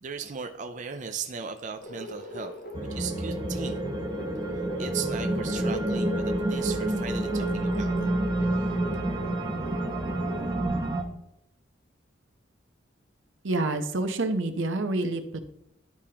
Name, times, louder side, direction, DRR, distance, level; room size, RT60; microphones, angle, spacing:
voice 1, 0.0-2.5 2.9-3.8 4.8-8.1 8.4-8.7, right 6 dB, 40° right, 6 dB, 0.5 m, -37 dB
sound 1, 1.8-10.7, equal, 50° left, 0.7 m, -40 dB
sound 2, 2.7-11.0, right 1 dB, 20° right, 0.8 m, -28 dB
voice 2, 13.4-15.4, right 2 dB, 85° right, 7 dB, 0.8 m, -28 dB
12.0 x 4.9 x 2.9 m, 0.79 s
head